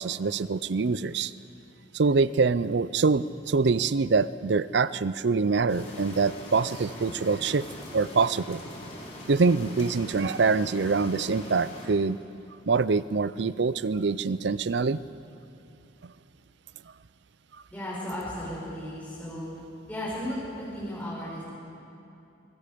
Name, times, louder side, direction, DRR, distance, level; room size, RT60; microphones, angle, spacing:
voice 1, 0.0-1.3 1.9-7.7 7.9-8.6 9.3-12.2 12.7-15.0 16.0-16.1, right 4 dB, 65° right, 17 dB, 0.5 m, -25 dB
sound 1, 5.7-11.9, left 1 dB, 35° left, 3.7 m, -42 dB
voice 2, 17.7-19.6 19.9-21.4, left 1 dB, 10° left, -8 dB, 5.6 m, -35 dB
24.0 x 23.5 x 5.2 m, 2.8 s
head